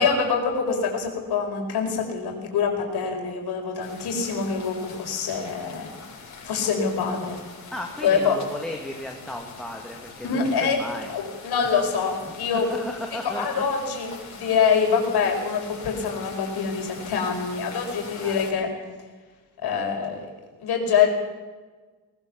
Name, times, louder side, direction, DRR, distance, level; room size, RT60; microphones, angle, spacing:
voice 1, 0.0-5.9 6.4-7.4 8.0-8.4 10.2-10.8 11.1-12.7 13.1-18.7 19.6-20.3 20.6-21.1, left 6 dB, 75° left, 2 dB, 5.0 m, -25 dB
sound 1, 3.8-18.5, left 4 dB, 45° left, 6.2 m, -43 dB
voice 2, 7.7-11.1 11.6-11.9 12.5-13.5 18.2-18.4, left 1 dB, ahead, 1 dB, 2.1 m, -35 dB
19.5 x 19.5 x 7.1 m, 1.3 s
cardioid pair, 140°, 39 cm